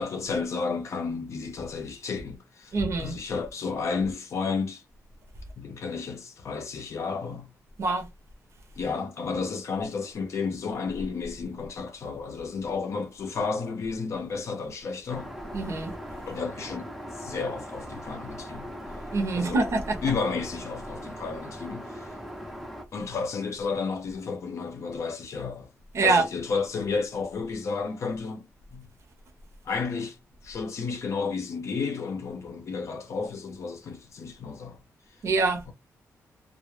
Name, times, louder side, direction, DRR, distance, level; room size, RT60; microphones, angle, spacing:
voice 1, 0.0-4.8 5.6-7.5 8.8-15.3 16.3-18.7 19.3-19.6 20.0-22.1 22.9-25.7 26.0-28.9 29.7-30.2 30.4-34.8 35.7-35.8, left 4 dB, 55° left, 0.6 m, -32 dB
voice 2, 2.7-3.2 7.8-8.1 15.5-16.0 19.1-20.0 25.9-26.3 35.2-35.6, right 3 dB, 55° right, 0.7 m, -25 dB
Aircraft, 15.1-22.8, equal, ahead, 0.5 m, -40 dB
2.3 x 2.0 x 3.1 m
wide cardioid pair, 130°, 6 cm